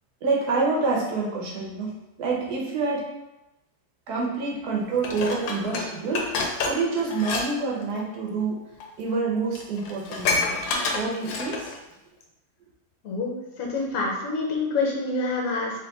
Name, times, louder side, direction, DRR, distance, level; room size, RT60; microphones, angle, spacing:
voice 1, 0.2-1.9 2.2-3.1 4.1-8.6 9.0-10.6 10.9-11.7, right 3 dB, 60° right, -2 dB, 1.3 m, -27 dB
Dishes pots and pans, 5.0-7.5 7.8-8.0 8.8-8.9 9.2-9.3 9.5-11.8 12.2-12.3, left 4 dB, 80° left, 1.4 m, -28 dB
voice 2, 13.0-15.7, left 3 dB, 55° left, -1 dB, 1.2 m, -27 dB
3.5 x 3.1 x 4.0 m, 0.95 s
omnidirectional pair, 2.1 m